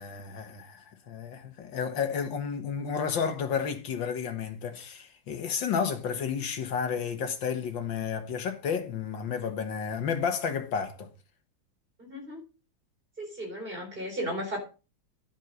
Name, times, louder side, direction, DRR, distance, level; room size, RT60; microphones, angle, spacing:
voice 1, 0.0-11.1, left 6 dB, 75° left, 2.1 m, -31 dB
voice 2, 12.1-12.4 13.2-14.6, equal, 25° right, 4.2 m, -35 dB
11.0 x 7.5 x 5.3 m
omnidirectional pair, 2.1 m